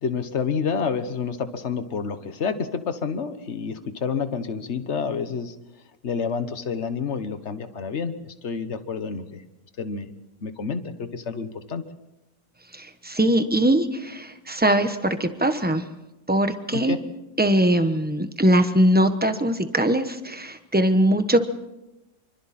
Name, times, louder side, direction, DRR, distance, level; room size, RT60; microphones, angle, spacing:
voice 1, 0.0-5.5 6.0-9.4 9.8-10.1 10.4-11.8 16.7-17.0, left 5 dB, 40° left, 10 dB, 1.4 m, -29 dB
voice 2, 12.7-15.8 16.3-17.0 17.4-21.4, right 1 dB, 5° right, 8 dB, 0.8 m, -21 dB
26.5 x 25.0 x 4.3 m, 0.95 s
omnidirectional pair, 2.0 m